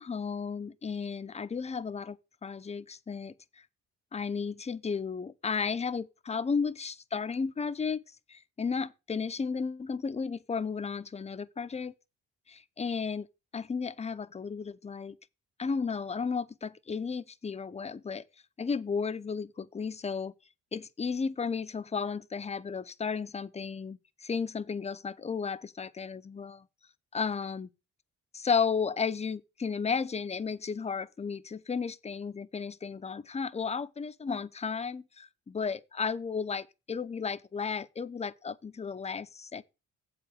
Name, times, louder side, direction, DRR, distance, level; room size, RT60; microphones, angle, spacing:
voice 1, 0.0-3.3 4.1-8.0 8.3-11.9 12.5-13.3 13.5-15.2 15.6-18.2 18.6-20.3 20.7-26.7 27.1-27.7 28.3-39.6, left 5 dB, 20° left, 0.6 m, -33 dB
7.7 x 4.9 x 7.1 m
cardioid pair, 90°, 30 cm